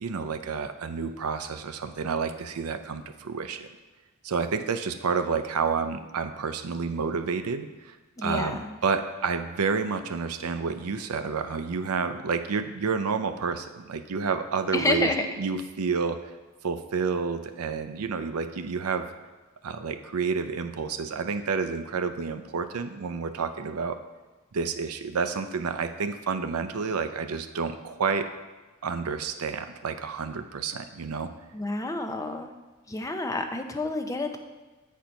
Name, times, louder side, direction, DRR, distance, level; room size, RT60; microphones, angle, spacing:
voice 1, 0.0-3.7 4.2-15.1 15.4-16.2 16.6-19.1 19.6-24.0 24.5-28.3 28.8-31.3, right 5 dB, 85° right, 9 dB, 0.5 m, -29 dB
voice 2, 8.2-8.7 14.7-15.3 31.5-32.5 32.9-34.4, left 2 dB, 15° left, 6 dB, 0.5 m, -29 dB
8.2 x 4.4 x 5.1 m, 1.2 s
head